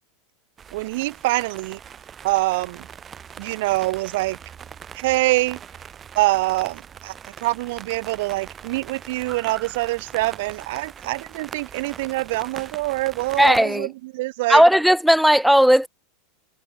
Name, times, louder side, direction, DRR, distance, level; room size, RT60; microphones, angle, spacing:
sound 1, 0.6-13.6, right 8 dB, 25° right, 7.8 m, -41 dB
voice 1, 0.7-1.8 2.2-2.9 3.4-4.4 4.9-5.6 6.1-14.6, right 21 dB, 65° right, 1.4 m, -25 dB
voice 2, 13.4-13.9 14.5-15.9, equal, ahead, 0.5 m, -15 dB
supercardioid pair, 135°, 0 cm